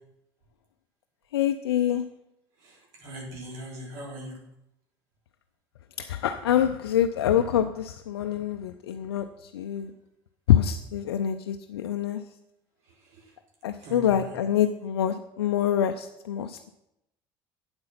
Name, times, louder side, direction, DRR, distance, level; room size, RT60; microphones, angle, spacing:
voice 1, 1.3-2.1 6.0-9.9 10.5-12.2 13.6-16.7, left 10 dB, 85° left, 7 dB, 0.5 m, -26 dB
voice 2, 2.6-4.4 13.0-13.3 13.8-14.4, equal, 65° right, -2 dB, 3.6 m, -41 dB
8.8 x 7.8 x 5.8 m, 0.83 s
hypercardioid pair, 65°, 13 cm